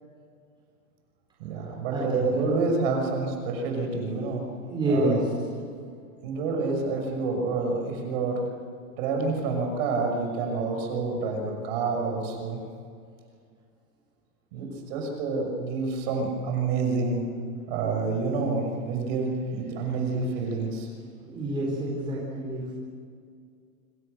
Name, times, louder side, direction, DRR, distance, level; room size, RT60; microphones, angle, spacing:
voice 1, 1.4-4.4 4.9-5.2 6.2-8.4 9.0-12.6 14.5-17.2 17.7-20.9, right 4 dB, 40° right, 2 dB, 6.2 m, -28 dB
voice 2, 1.9-2.3 4.6-5.2 19.9-20.0 21.3-22.7, right 1 dB, 10° right, -4 dB, 4.2 m, -28 dB
26.0 x 26.0 x 6.7 m, 2.2 s
supercardioid pair, 170°, 43 cm